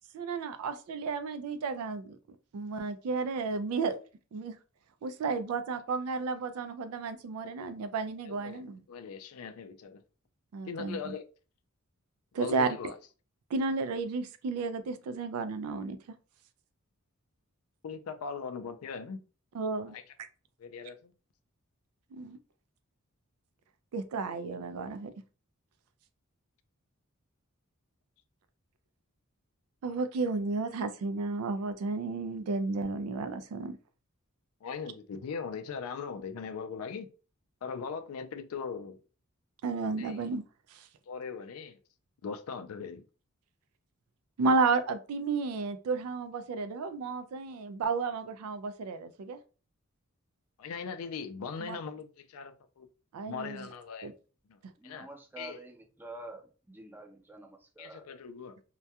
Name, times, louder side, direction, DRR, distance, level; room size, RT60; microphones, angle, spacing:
voice 1, 0.1-2.2 2.5-4.0 4.3-4.6 5.0-8.8 10.5-11.1 12.3-12.8 13.5-16.0 19.5-20.0 22.1-22.4 23.9-25.1 29.8-33.8 39.6-40.4 40.7-40.9 44.4-49.4 51.6-51.8 53.1-53.7 54.0-54.1, right 4 dB, 90° right, 0.3 m, -32 dB
voice 2, 8.3-10.0 10.7-11.2 12.4-12.9 17.8-19.2 19.9-20.0 20.6-21.1 34.6-37.1 37.6-39.0 40.0-40.2 41.1-41.8 42.2-43.0 50.6-52.9 53.2-54.1 54.5-54.6 54.8-55.1 55.4-55.6 57.8-58.6, left 5 dB, 70° left, 0.4 m, -40 dB
voice 3, 54.8-58.1, right 2 dB, 10° right, 0.4 m, -48 dB
2.2 x 2.2 x 2.7 m
head